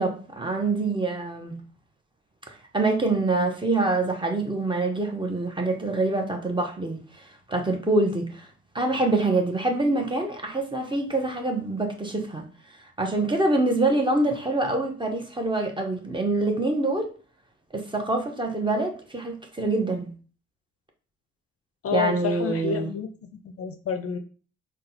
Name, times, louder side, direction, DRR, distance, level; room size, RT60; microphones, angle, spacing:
voice 1, 0.0-1.6 2.5-8.5 8.7-12.5 13.0-17.1 17.7-20.1 21.9-22.9, right 2 dB, 15° right, 0.9 m, -25 dB
voice 2, 21.8-23.1 23.4-24.2, left 6 dB, 45° left, 0.5 m, -29 dB
3.8 x 2.3 x 2.8 m
hypercardioid pair, 45°, 33 cm